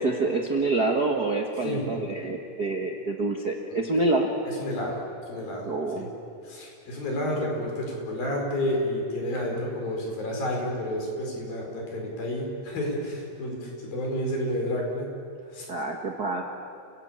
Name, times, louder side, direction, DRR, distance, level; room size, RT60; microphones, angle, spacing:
voice 1, 0.0-4.3 5.6-6.1 15.7-16.4, right 2 dB, 50° right, 2 dB, 1.2 m, -27 dB
voice 2, 4.5-5.0 5.3-5.7 6.0-6.1 6.4-15.1 15.5-15.7, left 1 dB, 75° left, 0 dB, 6.6 m, -30 dB
30.0 x 17.5 x 8.9 m, 2.5 s
omnidirectional pair, 4.1 m